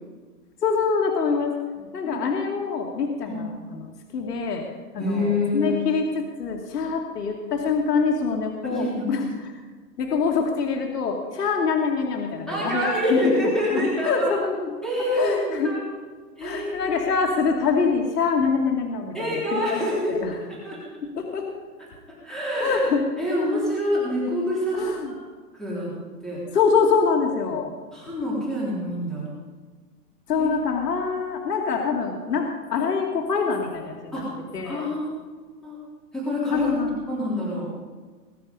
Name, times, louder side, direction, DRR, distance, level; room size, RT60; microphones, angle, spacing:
voice 1, 0.6-1.6 1.9-3.8 4.1-4.6 4.9-9.2 10.0-14.7 15.1-15.7 16.4-19.8 20.1-20.3 21.2-21.5 22.6-23.0 24.7-25.1 26.5-27.7 30.3-34.2 34.5-34.8 36.5-37.0, left 5 dB, 80° left, 1 dB, 2.5 m, -25 dB
voice 2, 5.0-5.8 8.6-9.1 12.5-14.3 14.8-15.8 16.4-16.9 19.1-20.3 20.6-20.8 22.2-22.9 23.2-25.0 25.5-25.9 26.2-26.4 27.9-29.3 30.4-30.5 34.1-34.4 34.6-35.1 35.6-35.8 36.1-36.7 37.1-37.7, left 1 dB, ahead, -8 dB, 3.6 m, -26 dB
21.0 x 10.5 x 5.3 m, 1.4 s
hypercardioid pair, 160°, 48 cm